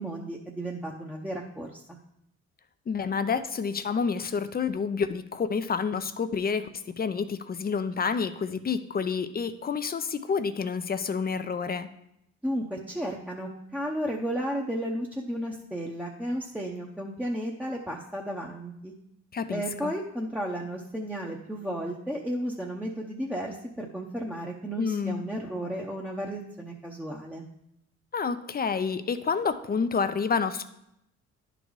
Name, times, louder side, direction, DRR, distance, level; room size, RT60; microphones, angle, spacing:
voice 1, 0.0-1.8 12.4-18.9 19.5-27.4, equal, 5° right, -2 dB, 0.8 m, -33 dB
voice 2, 2.9-11.9 19.3-19.9 24.8-25.2 28.1-30.7, left 5 dB, 30° left, 11 dB, 0.5 m, -29 dB
10.5 x 4.0 x 4.7 m, 0.79 s
cardioid pair, 90°, 30 cm